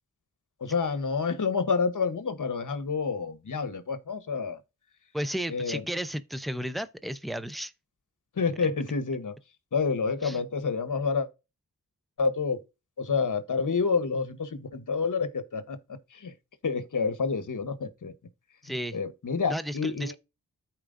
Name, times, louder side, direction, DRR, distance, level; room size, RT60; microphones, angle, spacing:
voice 1, 0.6-4.6 5.5-5.8 8.4-9.3 9.7-11.3 12.2-12.6 13.0-15.8 16.1-16.3 16.6-18.1 18.7-20.2, left 5 dB, 55° left, 1.1 m, -28 dB
voice 2, 5.1-7.7 10.2-10.4 18.6-19.0 19.5-20.2, equal, ahead, 0.6 m, -33 dB
14.0 x 4.6 x 2.6 m
cardioid pair, 55°, 37 cm